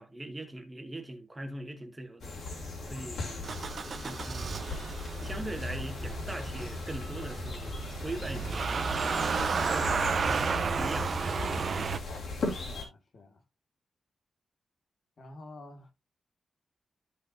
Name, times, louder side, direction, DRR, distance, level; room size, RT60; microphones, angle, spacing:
voice 1, 0.0-2.3 2.9-3.6 4.0-4.5 5.2-9.2 9.7-11.5, right 1 dB, 15° right, 1.6 m, -41 dB
sound 1, 2.2-12.8, left 3 dB, 80° left, 3.5 m, -38 dB
Motor vehicle (road) / Engine starting, 3.4-12.0, right 5 dB, 50° right, 0.8 m, -33 dB
voice 2, 12.3-13.4 15.2-15.9, left 2 dB, 55° left, 1.7 m, -49 dB
13.5 x 5.1 x 2.5 m
wide cardioid pair, 125°, 0 cm